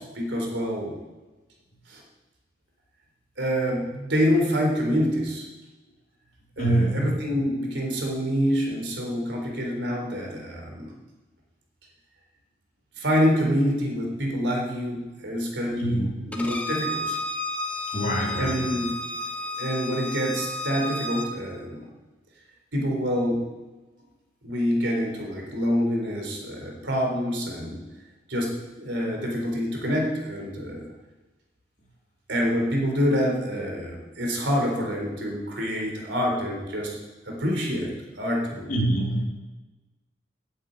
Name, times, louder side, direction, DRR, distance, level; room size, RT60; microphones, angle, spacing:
voice 1, 0.1-1.0 1.9-2.0 3.4-5.5 6.6-10.9 13.0-17.2 18.4-18.9 19.6-21.8 22.7-23.4 24.4-27.8 28.3-30.8 32.3-37.0 37.2-38.7, equal, 70° right, 0 dB, 3.9 m, -26 dB
voice 2, 6.6-7.1 15.8-16.2 17.9-18.6 38.7-39.3, right 1 dB, 45° left, -2 dB, 3.2 m, -25 dB
Bowed string instrument, 16.3-21.3, left 2 dB, 5° left, 1.3 m, -32 dB
10.0 x 9.2 x 8.9 m, 1.2 s
head